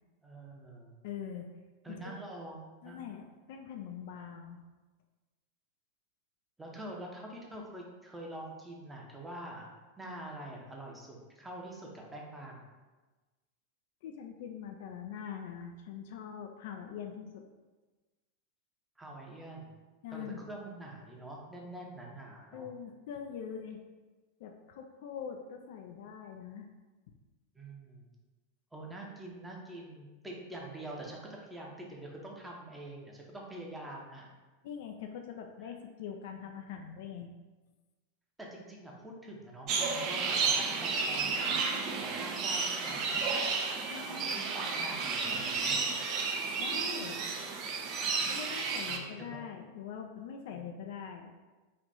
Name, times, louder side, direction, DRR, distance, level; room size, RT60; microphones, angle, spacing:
voice 1, 0.2-1.0 1.8-3.0 6.6-12.7 19.0-19.7 20.1-22.7 27.5-28.1 28.7-34.3 36.4-36.5 38.4-43.2 44.1-45.9 48.9-49.4 50.5-50.7, right 1 dB, 10° right, -2 dB, 0.7 m, -45 dB
voice 2, 1.0-1.5 1.9-2.0 2.8-4.6 14.0-17.4 20.0-20.4 22.5-23.8 24.4-26.7 34.6-37.3 43.9-44.4 46.6-47.2 48.3-51.3, left 7 dB, 50° left, 3 dB, 0.3 m, -43 dB
sound 1, 39.7-49.0, right 4 dB, 35° right, 0.4 m, -32 dB
3.3 x 2.4 x 4.1 m, 1.2 s
figure-of-eight pair, 90°, 0 cm